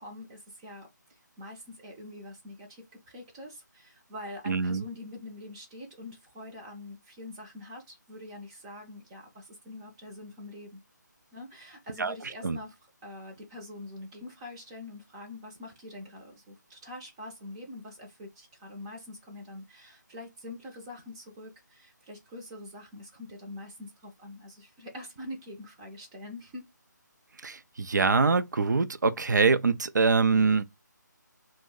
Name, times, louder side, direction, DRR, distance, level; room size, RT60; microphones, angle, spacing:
voice 1, 0.0-10.8 11.3-26.6, left 1 dB, 15° right, 0.5 m, -44 dB
voice 2, 4.5-4.8 12.0-12.1 12.4-12.6 27.4-30.6, right 4 dB, 65° right, 0.4 m, -24 dB
2.5 x 2.1 x 3.6 m
figure-of-eight pair, 150°, 10 cm